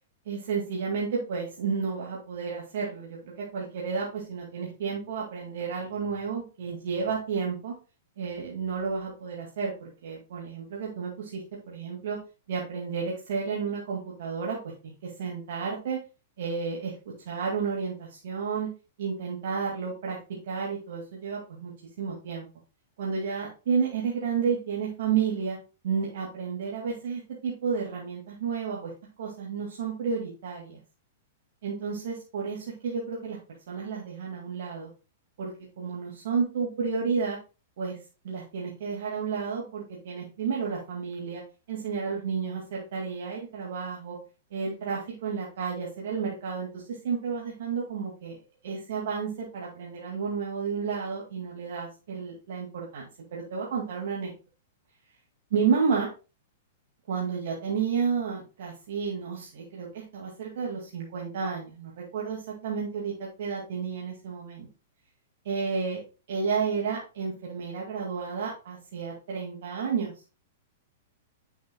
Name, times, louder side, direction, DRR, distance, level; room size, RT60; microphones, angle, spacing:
voice 1, 0.3-7.7 8.2-12.2 12.5-16.0 16.4-18.7 19.0-20.2 20.4-21.7 22.0-22.5 23.0-25.6 25.8-28.9 29.2-30.8 31.6-33.4 33.7-34.9 35.4-37.4 37.8-38.0 38.2-41.4 41.7-44.2 44.5-48.4 48.6-54.3 55.5-56.1 57.1-64.7 65.4-66.0 66.3-70.1, right 6 dB, 65° right, -2 dB, 2.1 m, -31 dB
9.2 x 7.2 x 2.3 m, 0.32 s
hypercardioid pair, 120°, 0 cm